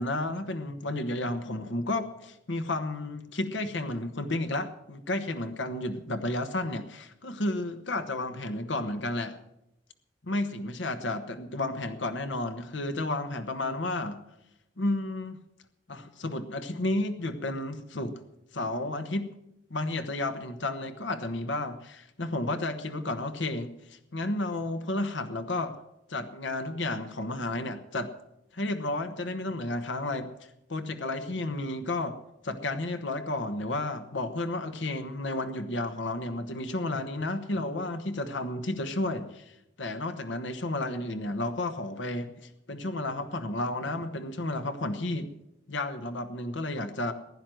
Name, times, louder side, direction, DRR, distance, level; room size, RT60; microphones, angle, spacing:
voice 1, 0.0-9.4 10.2-14.2 14.8-15.4 15.9-18.2 18.5-19.3 19.7-25.8 26.1-28.1 28.5-30.3 30.7-32.1 32.4-45.3 45.7-47.1, left 2 dB, 75° left, 8 dB, 1.2 m, -32 dB
15.5 x 10.5 x 7.7 m, 0.85 s
head